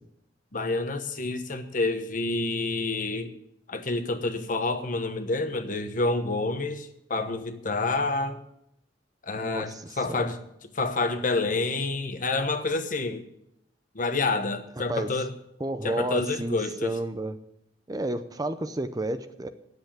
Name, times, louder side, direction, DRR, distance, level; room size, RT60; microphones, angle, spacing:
voice 1, 0.5-3.3 3.7-8.4 9.3-10.4 10.7-13.3 13.9-15.3 15.8-17.0, left 3 dB, 50° left, 8 dB, 1.2 m, -28 dB
voice 2, 9.3-10.3 14.9-15.1 15.6-17.4 17.9-19.5, right 2 dB, 20° right, 10 dB, 0.6 m, -31 dB
10.5 x 8.0 x 8.8 m, 0.78 s
head